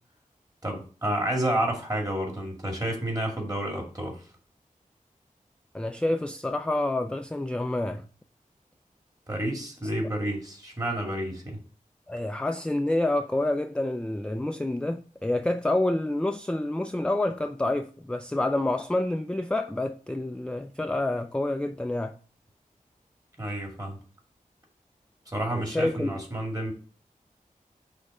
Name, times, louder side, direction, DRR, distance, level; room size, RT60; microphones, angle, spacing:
voice 1, 0.6-4.2 9.3-11.6 23.4-24.0 25.3-26.7, right 1 dB, 25° right, 2.0 m, -30 dB
voice 2, 5.7-8.1 12.1-22.2 25.5-26.2, left 1 dB, 5° left, 0.3 m, -28 dB
6.0 x 3.3 x 5.3 m
wide cardioid pair, 80°, 14 cm